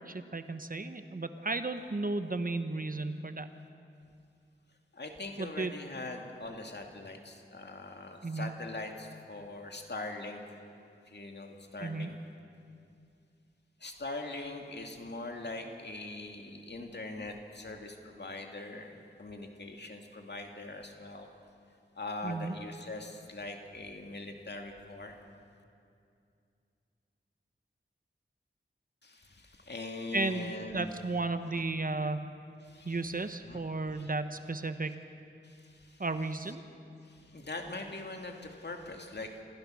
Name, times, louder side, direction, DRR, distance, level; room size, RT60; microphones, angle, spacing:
voice 1, 0.0-3.5 5.4-5.7 8.2-8.5 11.8-12.1 22.2-22.6 30.1-32.3 32.8-35.0 36.0-36.6, right 3 dB, 45° right, 9 dB, 1.0 m, -34 dB
voice 2, 4.9-10.4 11.1-12.2 13.8-21.3 21.9-25.2 29.0-31.0 31.5-31.6 32.6-33.0 33.5-33.6 33.9-34.1 35.4-36.0 37.0-39.4, left 2 dB, 55° left, 3 dB, 2.3 m, -42 dB
27.5 x 15.0 x 6.4 m, 2.5 s
wide cardioid pair, 55°, 20 cm